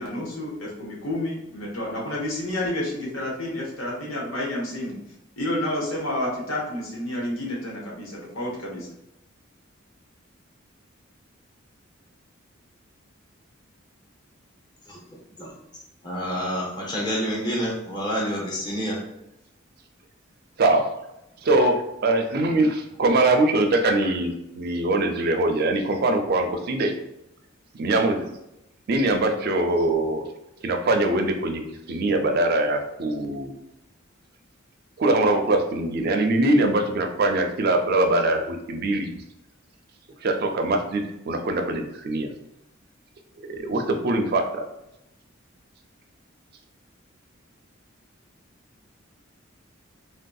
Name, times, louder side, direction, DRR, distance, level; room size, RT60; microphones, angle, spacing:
voice 1, 0.0-5.0 5.4-8.9, left 1 dB, 80° left, -3 dB, 0.8 m, -30 dB
voice 2, 16.0-19.0, equal, 20° left, -3 dB, 0.6 m, -28 dB
voice 3, 21.4-26.9 27.7-28.3 28.9-30.3 30.6-31.6 31.9-33.5 35.0-39.1 40.2-42.3 43.4-44.6, right 2 dB, 50° right, 4 dB, 0.4 m, -22 dB
3.5 x 2.6 x 2.3 m, 0.86 s
head